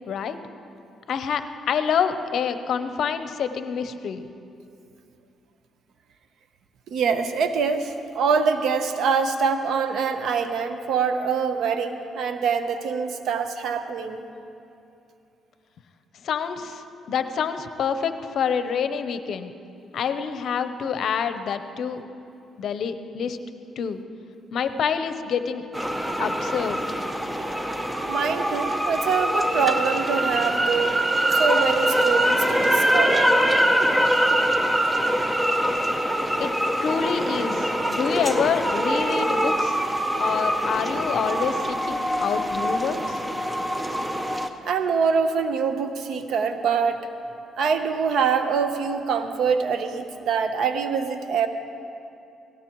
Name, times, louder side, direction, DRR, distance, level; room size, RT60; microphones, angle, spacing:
voice 1, 0.1-0.4 1.1-4.3 16.2-19.5 19.9-22.0 22.6-23.4 23.8-24.0 24.5-25.6 26.2-26.8 36.4-36.5 36.8-39.8 40.2-43.2, left 7 dB, 65° left, 10 dB, 0.7 m, -27 dB
voice 2, 6.9-14.3 28.1-31.0 31.3-33.4 44.6-47.1 47.6-51.5, right 6 dB, 70° right, 8 dB, 0.9 m, -24 dB
sound 1, 25.7-44.5, equal, 10° right, 0.7 m, -23 dB
18.0 x 16.5 x 3.1 m, 2.6 s
cardioid pair, 90°, 0 cm